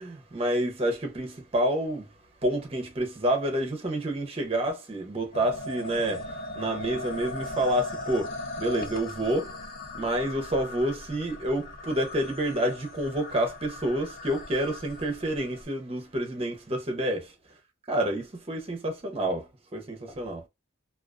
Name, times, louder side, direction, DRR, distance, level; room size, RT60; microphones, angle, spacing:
voice 1, 0.0-2.1 2.4-9.6 9.9-17.3 17.9-20.4, right 1 dB, 30° right, 0.5 m, -29 dB
sound 1, 5.3-15.6, left 2 dB, 45° left, 0.4 m, -39 dB
2.3 x 2.3 x 2.3 m
head